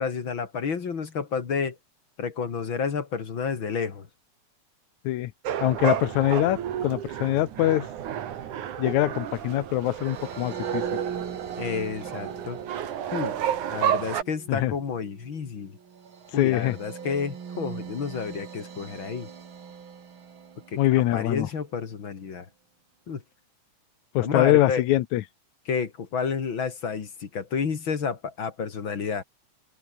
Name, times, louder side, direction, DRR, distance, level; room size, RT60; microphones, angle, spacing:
voice 1, 0.0-1.8 2.2-4.1 11.6-12.6 13.1-13.4 13.7-15.8 16.3-19.3 20.7-20.8 21.1-22.5 23.1-23.2 24.2-24.8 25.7-29.2, left 6 dB, 45° left, 2.8 m, -30 dB
California Sea Lions - Monterey Bay, 5.5-14.2, right 10 dB, 85° right, 3.3 m, -31 dB
voice 2, 5.6-7.9 8.8-10.8 14.5-14.7 16.4-16.8 20.8-21.5 24.1-25.2, left 14 dB, 80° left, 2.2 m, -23 dB
sound 1, 9.9-21.3, right 6 dB, 45° right, 2.7 m, -40 dB
open air
omnidirectional pair, 3.4 m